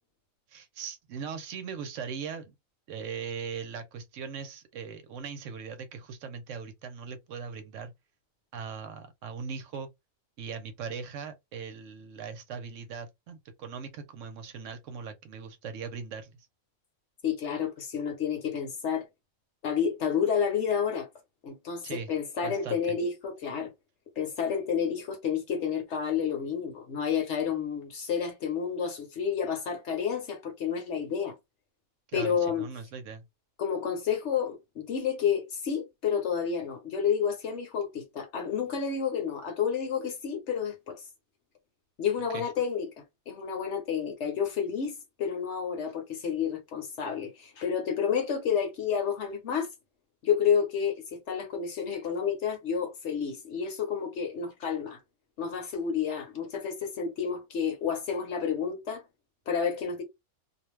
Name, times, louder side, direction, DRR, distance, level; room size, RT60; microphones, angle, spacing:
voice 1, 0.5-2.5 2.9-7.9 8.5-9.9 10.4-16.5 21.8-22.1 22.4-23.0 32.1-33.2 42.3-42.5, right 6 dB, 70° right, 0.9 m, -39 dB
voice 2, 17.2-19.1 19.6-21.1 21.4-23.7 24.2-31.3 32.1-32.6 33.6-41.0 42.0-42.9 43.3-49.7 50.2-55.0 55.4-59.0 59.5-60.0, left 7 dB, 60° left, 1.0 m, -30 dB
2.5 x 2.1 x 3.1 m
omnidirectional pair, 1.4 m